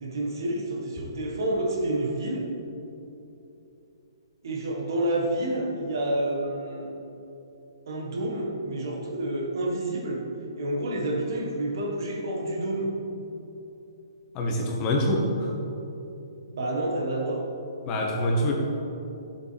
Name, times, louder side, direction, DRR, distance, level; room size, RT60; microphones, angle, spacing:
voice 1, 0.0-2.5 4.4-7.0 7.9-10.2 10.6-12.9 16.5-17.4, right 1 dB, 55° right, -1 dB, 1.7 m, -29 dB
voice 2, 14.3-15.5 17.9-18.5, left 1 dB, 30° left, -1 dB, 1.6 m, -25 dB
13.0 x 7.5 x 3.5 m, 3.0 s
figure-of-eight pair, 125°, 2 cm